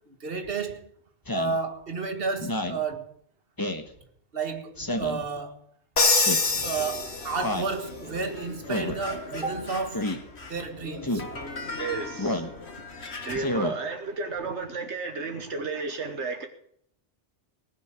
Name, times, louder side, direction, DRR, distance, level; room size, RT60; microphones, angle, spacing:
voice 1, 0.1-0.9 1.3-3.1 4.3-5.6 6.6-10.1 10.4-11.2, right 4 dB, 55° right, 1.9 m, -31 dB
Speech synthesizer, 1.3-1.6 2.4-2.8 3.6-3.9 4.8-5.2 6.1-6.5 7.4-7.7 8.7-9.0 9.9-10.2 11.0-11.3 12.2-12.5 13.3-13.7, left 1 dB, 20° left, 1.4 m, -29 dB
Crash cymbal, 6.0-7.7, left 3 dB, 85° left, 2.2 m, -24 dB
sound 1, 6.5-13.7, left 3 dB, 65° left, 2.0 m, -40 dB
voice 2, 11.8-12.5 13.2-16.5, right 4 dB, 75° right, 1.6 m, -33 dB
19.5 x 6.5 x 8.2 m
omnidirectional pair, 1.2 m